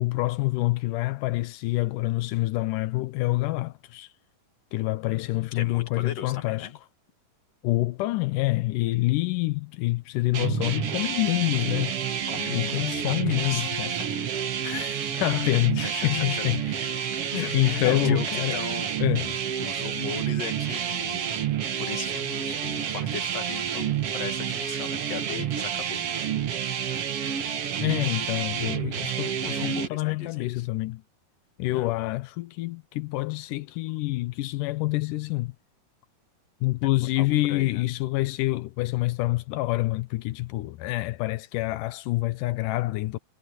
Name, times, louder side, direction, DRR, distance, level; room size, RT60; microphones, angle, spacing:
voice 1, 0.0-4.1 4.7-6.7 7.6-12.0 12.5-14.0 14.6-18.6 19.0-19.3 27.8-31.0 31.6-35.6 36.6-43.2, left 19 dB, 85° left, 2.3 m, -27 dB
voice 2, 5.1-6.8 12.3-14.1 14.9-15.3 15.8-16.4 17.3-18.9 19.6-21.4 21.8-26.1 29.4-30.7 31.7-31.9 37.2-37.9, left 8 dB, 55° left, 3.0 m, -38 dB
sound 1, 10.3-29.9, right 9 dB, 55° right, 2.1 m, -29 dB
omnidirectional pair, 3.7 m